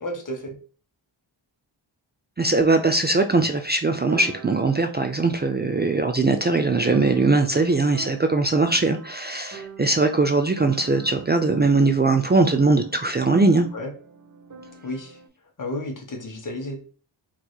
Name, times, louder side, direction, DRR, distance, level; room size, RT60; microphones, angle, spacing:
voice 1, 0.0-0.5 13.7-13.9 14.8-15.1 15.6-16.8, left 1 dB, 40° left, 2 dB, 1.6 m, -32 dB
voice 2, 2.4-13.7, right 3 dB, 25° right, 6 dB, 0.5 m, -20 dB
sound 1, 4.1-15.3, right 5 dB, 40° right, 1.5 m, -43 dB
4.5 x 4.0 x 2.3 m, 0.39 s
wide cardioid pair, 85°, 46 cm